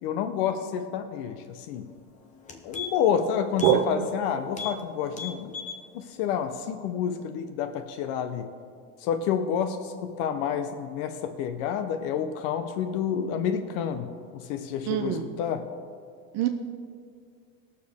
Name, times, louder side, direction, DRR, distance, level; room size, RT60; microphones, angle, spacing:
voice 1, 0.0-1.9 2.6-5.5 5.9-8.5 9.0-15.6, left 8 dB, 70° left, 8 dB, 0.8 m, -29 dB
sound 1, 1.9-2.0 2.3-3.2 3.5-3.8 4.1-4.2 4.5-4.8 5.1-5.8 6.2-6.3, left 7 dB, 20° left, 0.8 m, -37 dB
voice 2, 3.6-4.1 14.9-15.3 16.3-16.5, right 10 dB, 50° right, 6 dB, 0.6 m, -23 dB
19.5 x 6.9 x 3.6 m, 2.2 s
cardioid pair, 170°, 34 cm